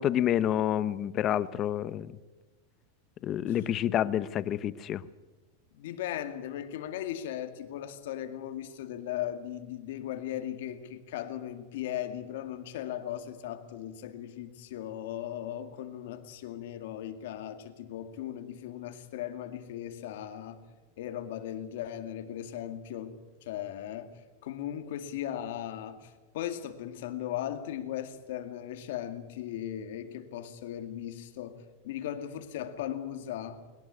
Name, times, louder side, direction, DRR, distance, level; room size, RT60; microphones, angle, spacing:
voice 1, 0.0-2.1 3.2-5.0, left 11 dB, 25° left, 17 dB, 0.7 m, -28 dB
voice 2, 5.7-20.6 21.0-33.6, left 11 dB, 60° left, 9 dB, 2.2 m, -38 dB
21.5 x 18.5 x 9.8 m, 1.2 s
supercardioid pair, 175°, 0 cm